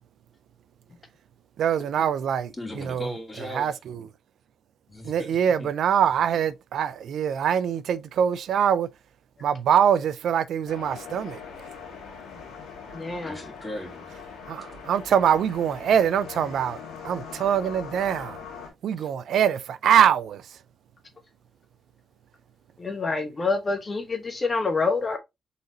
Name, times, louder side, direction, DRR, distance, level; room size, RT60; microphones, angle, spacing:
voice 1, 1.6-3.1 3.5-4.0 5.0-8.9 9.4-11.4 14.5-18.4 18.8-20.4, right 8 dB, 75° right, 0.4 m, -23 dB
voice 2, 2.6-3.7 4.9-5.3 5.6-5.7 13.2-14.1, equal, 25° left, 2.5 m, -37 dB
sound 1, 10.7-18.7, left 6 dB, 80° left, 1.5 m, -41 dB
voice 3, 12.9-13.4 22.8-25.2, left 4 dB, 40° left, 0.9 m, -27 dB
4.1 x 3.8 x 2.9 m
supercardioid pair, 50°, 0 cm